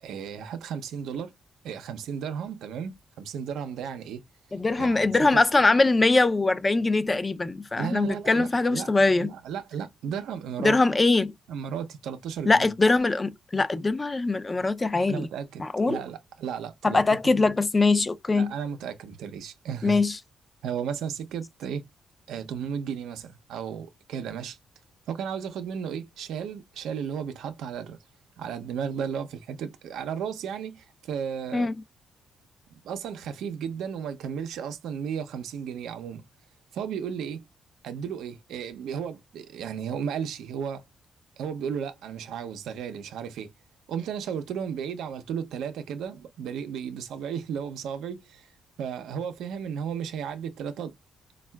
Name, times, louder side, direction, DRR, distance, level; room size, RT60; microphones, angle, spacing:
voice 1, 0.0-1.3 1.6-4.2 4.8-5.4 7.8-8.9 9.2-10.8 11.5-12.7 15.1-17.0 17.4-17.5 18.3-20.0 20.6-21.9 22.3-24.6 25.1-28.0 28.4-31.7 32.7-36.2 36.7-37.5 37.8-40.8 41.4-43.5 43.9-48.5 48.8-50.9, right 7 dB, 90° right, 0.6 m, -34 dB
voice 2, 4.5-9.3 10.6-11.3 12.5-15.3 15.6-16.0 16.8-18.5 19.8-20.2 31.5-31.7, left 3 dB, 25° left, 0.4 m, -22 dB
4.4 x 2.3 x 2.2 m
cardioid pair, 95°, 0 cm